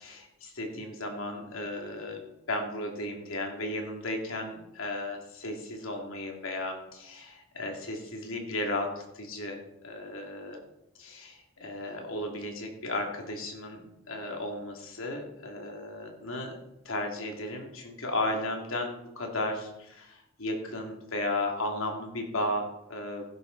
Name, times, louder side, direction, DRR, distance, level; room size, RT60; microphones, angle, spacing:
voice 1, 0.0-2.2 2.5-10.6 11.0-16.6 16.8-23.2, left 1 dB, 75° left, 2 dB, 2.8 m, -35 dB
15.0 x 11.0 x 4.1 m, 0.85 s
head